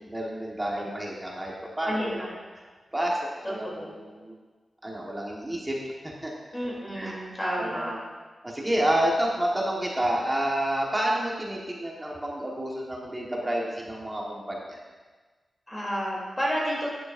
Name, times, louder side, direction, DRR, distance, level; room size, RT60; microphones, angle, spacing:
voice 1, 0.0-2.3 2.6-2.7 2.9-3.2 3.5-4.3 4.8-5.8 6.0-6.3 6.9-7.2 7.5-8.0 8.4-14.8, right 1 dB, 15° right, -3 dB, 1.3 m, -29 dB
voice 2, 1.8-2.3 3.6-4.0 6.5-8.0 15.7-16.9, equal, 20° left, -4 dB, 2.9 m, -31 dB
11.0 x 9.7 x 2.5 m, 1.3 s
wide cardioid pair, 125°, 0 cm